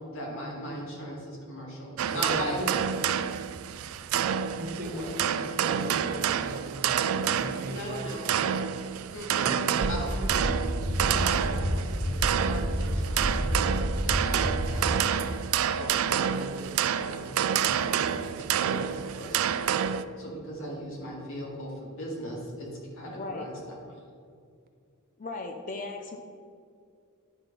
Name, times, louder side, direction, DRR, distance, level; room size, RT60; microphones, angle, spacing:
voice 1, 0.1-2.6 4.7-5.1 7.7-8.3 9.1-9.5 9.9-10.3 11.1-15.0 15.8-19.6 20.2-22.7 23.0-23.8, equal, 60° left, -3 dB, 2.0 m, -39 dB
sound 1, 2.0-20.0, right 8 dB, 70° right, 0.3 m, -28 dB
voice 2, 2.1-2.7 4.6-7.0 7.4-8.5 9.4-10.7, right 1 dB, 45° right, 5 dB, 0.8 m, -38 dB
sound 2, 9.8-9.9 10.2-10.5 10.8-11.1 11.4-11.7 12.0-12.3 12.6-12.9 13.2-13.5 13.8-14.1 14.4-14.7, right 1 dB, 20° left, 1.6 m, -29 dB
voice 3, 23.1-23.5 25.2-26.2, left 3 dB, 35° left, 3 dB, 0.5 m, -37 dB
11.0 x 3.9 x 5.3 m, 2.3 s
head